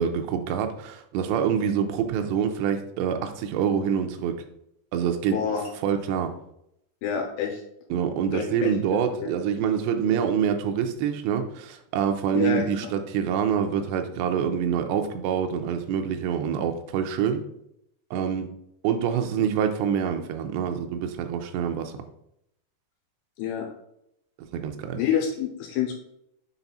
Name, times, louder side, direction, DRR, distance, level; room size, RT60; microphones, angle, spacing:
voice 1, 0.0-4.4 4.9-5.4 5.8-6.4 7.9-17.4 18.1-18.5 18.8-22.0 24.5-25.0, right 8 dB, 90° right, 6 dB, 2.8 m, -26 dB
voice 2, 5.3-5.7 7.0-7.6 8.3-8.7 9.2-9.3 12.3-12.6 23.4-23.7 25.0-25.9, left 8 dB, 80° left, 1 dB, 2.9 m, -27 dB
7.0 x 4.1 x 4.0 m, 0.77 s
omnidirectional pair, 5.0 m